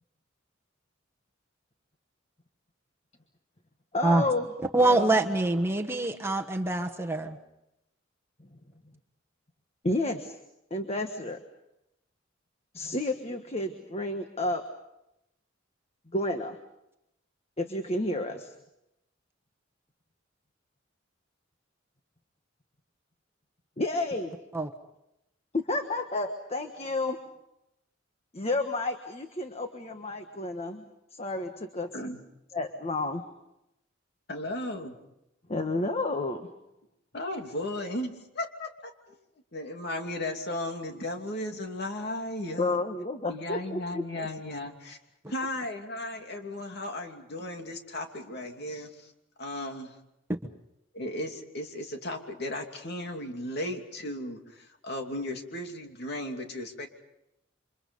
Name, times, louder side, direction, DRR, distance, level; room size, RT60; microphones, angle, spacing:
voice 1, 3.9-4.5 4.8-5.1 8.5-8.6 9.8-10.4 10.7-11.4 12.7-14.6 16.1-16.6 17.6-18.5 23.8-24.3 25.5-27.2 28.3-30.8 31.1-31.9 32.5-33.2 35.5-36.5 42.6-44.3, left 2 dB, 35° left, 6 dB, 1.4 m, -31 dB
voice 2, 4.7-7.4 24.5-24.7, right 2 dB, 15° right, 3 dB, 1.3 m, -25 dB
voice 3, 34.3-35.0 37.1-38.9 39.5-42.8 43.3-45.0 45.3-49.1 49.4-49.9 50.9-56.9, left 1 dB, 55° left, 3 dB, 2.8 m, -35 dB
29.0 x 25.5 x 5.4 m, 0.85 s
head